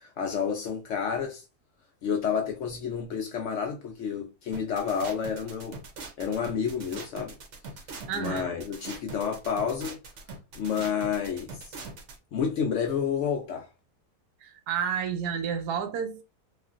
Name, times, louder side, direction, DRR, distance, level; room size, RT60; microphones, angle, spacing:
voice 1, 0.0-1.4 2.0-5.8 6.2-7.3 8.1-10.0 10.5-11.6 12.3-13.7, left 7 dB, 70° left, 0.7 m, -30 dB
sound 1, 4.5-12.2, right 4 dB, 60° right, 0.8 m, -42 dB
voice 2, 8.1-8.5 14.4-16.2, right 7 dB, 75° right, 1.1 m, -30 dB
3.0 x 2.4 x 2.5 m
omnidirectional pair, 1.7 m